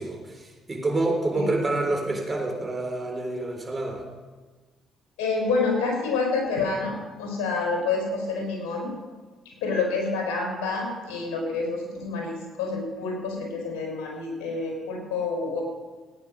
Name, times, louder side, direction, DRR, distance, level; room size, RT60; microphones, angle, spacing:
voice 1, 0.0-4.0, right 2 dB, 30° right, 1 dB, 4.0 m, -28 dB
voice 2, 5.2-8.9 9.4-15.6, left 4 dB, 85° left, 0 dB, 4.5 m, -28 dB
16.5 x 9.5 x 5.3 m, 1.4 s
supercardioid pair, 60°, 0 cm